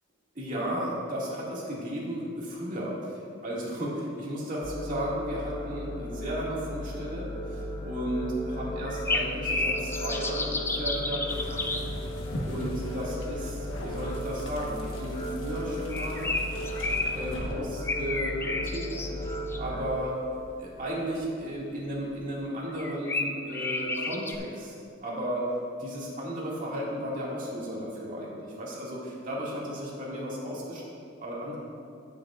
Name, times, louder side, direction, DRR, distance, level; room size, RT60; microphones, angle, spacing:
voice 1, 0.3-11.6 12.1-12.2 12.5-16.3 17.1-18.9 19.6-20.2 20.6-24.7 25.0-25.4 25.8-30.8 31.2-31.6, equal, 40° right, -6 dB, 2.1 m, -34 dB
sound 1, 4.6-20.0, equal, 35° left, 0.8 m, -36 dB
sound 2, 8.9-11.8 15.9-17.1 17.9-19.6 22.8-24.4, left 3 dB, 10° left, 0.4 m, -31 dB
sound 3, 11.3-22.5, equal, 80° left, 1.3 m, -43 dB
16.5 x 6.8 x 2.5 m, 2.5 s
head